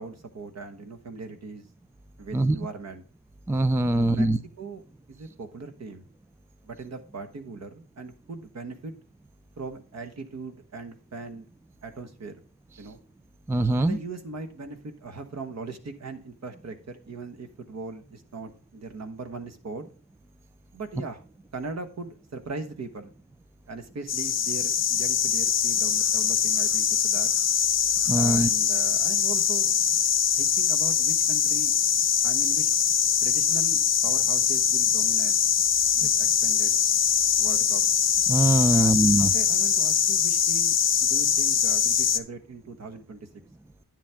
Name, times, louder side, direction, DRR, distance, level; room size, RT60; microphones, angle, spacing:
voice 1, 0.0-1.6 2.2-3.0 3.9-4.3 4.6-4.8 5.1-6.1 6.6-8.9 9.6-11.5 11.8-12.3 12.8-13.0 13.8-19.8 20.7-21.2 21.5-23.1 23.7-27.3 28.1-29.8 30.4-31.7 32.2-32.7 33.2-35.3 35.9-36.7 37.4-37.8 38.7-39.1 39.3-43.2, right 3 dB, 50° right, 7 dB, 1.3 m, -39 dB
voice 2, 3.5-4.4 13.5-14.0 28.1-28.5 38.3-39.3, right 2 dB, 10° right, 13 dB, 0.3 m, -22 dB
sound 1, 24.1-42.2, left 8 dB, 50° left, 0.7 m, -23 dB
10.5 x 7.4 x 3.5 m, 0.38 s
wide cardioid pair, 170°, 33 cm